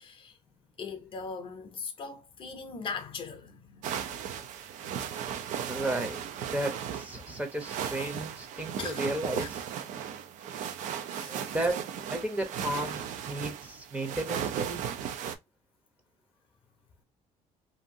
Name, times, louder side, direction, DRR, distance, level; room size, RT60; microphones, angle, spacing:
voice 1, 0.0-4.6 8.8-9.1 9.4-9.5 11.1-11.4, left 5 dB, 40° left, 0.6 m, -41 dB
sound 1, 3.8-15.4, right 9 dB, 65° right, 0.4 m, -36 dB
voice 2, 5.6-6.2 6.5-9.6 11.3-14.8, right 1 dB, 10° right, 0.7 m, -34 dB
2.7 x 2.6 x 2.5 m
cardioid pair, 120°, 14 cm